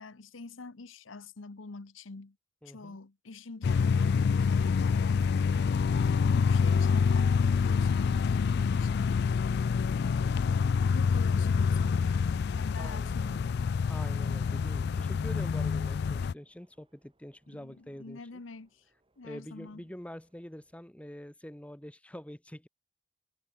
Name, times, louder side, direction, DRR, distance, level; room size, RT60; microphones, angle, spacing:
voice 1, 0.0-2.4 2.6-5.6 6.1-9.3 10.0-13.5 17.5-18.8 19.2-19.8, left 3 dB, 75° left, 1.0 m, -46 dB
voice 2, 2.6-3.0 12.8-13.5 13.9-18.2 19.2-22.7, equal, 5° left, 0.8 m, -45 dB
sound 1, 3.6-16.3, left 5 dB, 55° left, 0.3 m, -27 dB
sound 2, 8.8-20.8, right 2 dB, 25° right, 8.0 m, -66 dB
head